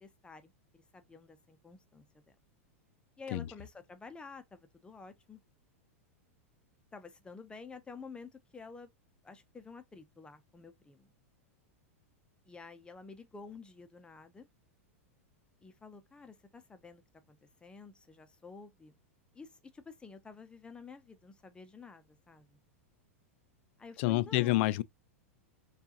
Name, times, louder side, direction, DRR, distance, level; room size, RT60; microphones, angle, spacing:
voice 1, 0.0-2.1 3.2-5.4 6.9-8.9 9.2-11.1 12.5-14.5 15.6-17.0 17.3-19.0 19.3-22.6 23.8-24.6, left 4 dB, 10° left, 0.7 m, -50 dB
voice 2, 24.0-24.8, left 17 dB, 55° left, 0.3 m, -28 dB
4.5 x 2.5 x 2.9 m
hypercardioid pair, 105°, 8 cm